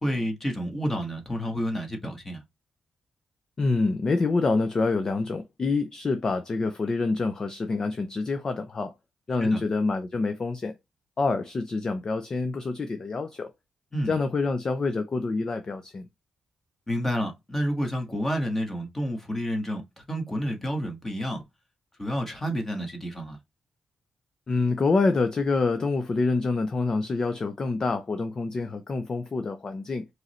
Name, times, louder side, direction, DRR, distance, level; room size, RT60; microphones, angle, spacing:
voice 1, 0.0-2.4 9.4-9.6 13.9-14.1 16.9-21.4 22.0-23.4, equal, 15° left, 1.3 m, -29 dB
voice 2, 3.6-8.9 9.3-10.8 11.2-13.5 14.1-16.1 24.5-30.1, left 3 dB, 30° left, 0.5 m, -26 dB
4.8 x 3.1 x 3.0 m
wide cardioid pair, 170°, 2 cm